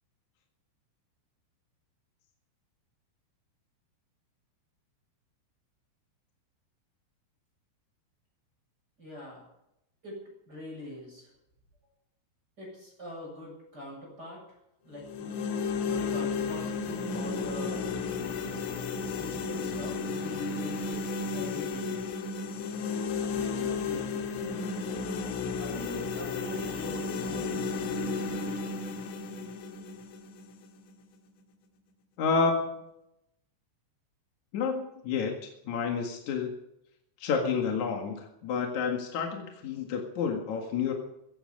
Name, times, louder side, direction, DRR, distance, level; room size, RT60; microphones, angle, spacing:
voice 1, 9.0-9.4 10.0-11.3 12.6-14.4 14.8-15.3 15.6-18.0 19.1-21.0 21.3-21.9 23.4-24.3 25.5-28.6, left 1 dB, 20° right, -2 dB, 8.1 m, -43 dB
sound 1, 15.0-31.0, left 4 dB, 85° left, 4.5 m, -33 dB
voice 2, 32.2-32.9 34.5-36.5 37.2-40.9, left 5 dB, 55° left, 2 dB, 2.2 m, -30 dB
16.5 x 15.5 x 5.4 m, 0.83 s
omnidirectional pair, 5.8 m